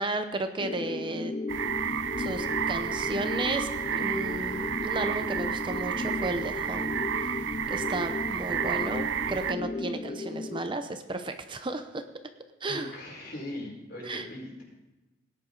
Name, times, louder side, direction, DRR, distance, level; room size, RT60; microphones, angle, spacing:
voice 1, 0.0-1.3 2.2-6.9 7.2-7.3 7.7-12.0 12.6-12.9 14.0-14.3, right 2 dB, 25° right, 8 dB, 0.7 m, -34 dB
sound 1, 0.6-10.6, left 3 dB, 30° left, 0.4 m, -35 dB
sound 2, 1.5-9.5, right 8 dB, 75° right, 0.5 m, -31 dB
sound 3, 1.8-3.4 3.7-5.5 6.1-7.7 8.4-9.9, equal, 5° left, 1.5 m, -51 dB
voice 2, 12.7-14.6, left 1 dB, 55° left, -2 dB, 4.6 m, -40 dB
18.5 x 10.0 x 3.9 m, 1.1 s
head